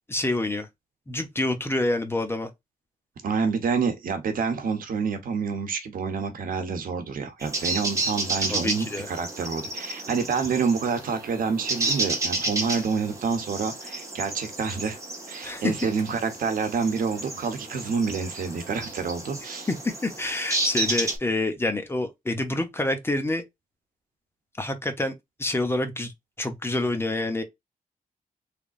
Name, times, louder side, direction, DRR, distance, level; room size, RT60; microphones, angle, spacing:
voice 1, 0.1-0.7 1.1-2.5 8.4-9.1 15.4-15.7 19.7-23.4 24.6-25.1 25.4-26.1 26.4-27.4, left 2 dB, 15° left, 0.8 m, -27 dB
voice 2, 3.2-15.0 15.3-19.7, right 5 dB, 70° right, 1.0 m, -28 dB
sound 1, 7.4-21.2, right 2 dB, 20° right, 1.4 m, -32 dB
3.7 x 3.4 x 2.4 m
wide cardioid pair, 145°, 15 cm